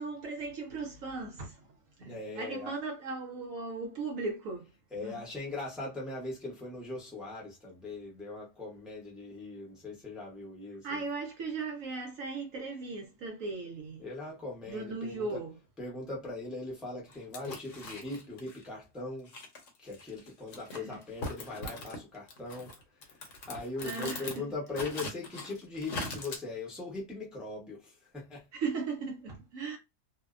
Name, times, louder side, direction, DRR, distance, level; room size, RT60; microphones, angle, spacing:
voice 1, 0.0-5.2 10.8-14.0 14.7-15.6 20.7-21.0 23.8-24.5 28.5-29.8, right 4 dB, 70° right, 0.9 m, -38 dB
voice 2, 2.0-2.7 4.9-11.0 14.0-15.4 15.8-19.3 19.8-22.7 23.2-28.4, left 2 dB, ahead, 0.4 m, -40 dB
sound 1, 17.1-18.6 19.3-22.0 22.3-24.4 24.7-26.4, left 2 dB, 60° left, 0.9 m, -41 dB
2.6 x 2.1 x 2.4 m
omnidirectional pair, 1.7 m